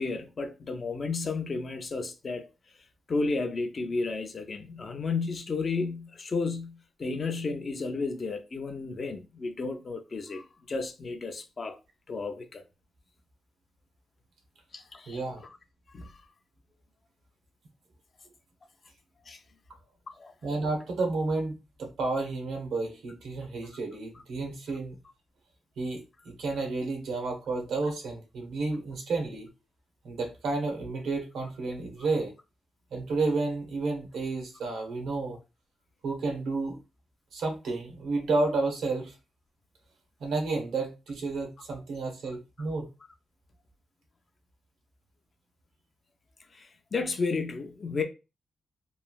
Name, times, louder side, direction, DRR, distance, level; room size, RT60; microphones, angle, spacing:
voice 1, 0.0-2.5 3.1-11.8 12.1-12.6 14.7-15.5 15.9-16.2 19.3-19.4 20.2-20.3 46.5-48.0, left 4 dB, 30° left, 0.4 m, -33 dB
voice 2, 15.1-15.4 20.4-25.0 25.8-29.5 30.0-32.3 32.9-35.4 36.0-36.8 37.3-39.1 40.2-42.9, right 3 dB, 80° right, 0.9 m, -31 dB
3.0 x 2.5 x 2.2 m
wide cardioid pair, 175°, 0 cm